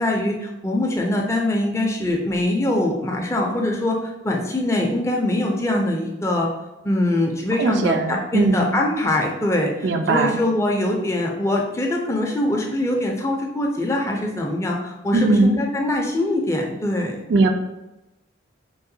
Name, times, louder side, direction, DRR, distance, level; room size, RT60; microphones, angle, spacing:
voice 1, 0.0-6.5 6.8-17.2, left 1 dB, 15° left, 0 dB, 0.4 m, -23 dB
voice 2, 7.6-8.8 9.8-10.4 15.1-15.6 17.3-17.5, right 3 dB, 60° right, 6 dB, 0.3 m, -19 dB
4.6 x 2.1 x 2.7 m, 0.98 s
head